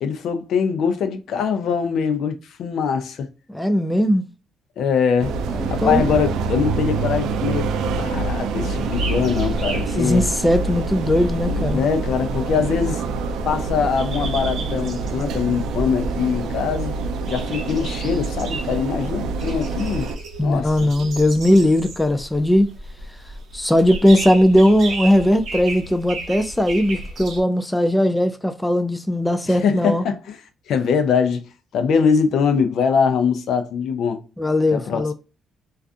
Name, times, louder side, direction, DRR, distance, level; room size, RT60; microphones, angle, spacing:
voice 1, 0.0-3.3 4.8-5.4 5.7-10.2 11.5-13.0 13.5-16.9 17.3-20.1 20.4-20.9 29.5-30.4 30.7-31.4 31.7-34.2 34.7-35.1, left 6 dB, 75° left, 0.5 m, -22 dB
voice 2, 3.5-4.2 5.5-6.1 10.0-11.8 20.4-22.7 23.5-30.0 34.4-35.1, left 1 dB, 10° left, 0.3 m, -18 dB
sound 1, 5.2-20.2, right 3 dB, 85° right, 0.3 m, -26 dB
sound 2, 8.9-27.4, right 2 dB, 60° right, 0.8 m, -34 dB
2.4 x 2.3 x 2.5 m
cardioid pair, 90°, 0 cm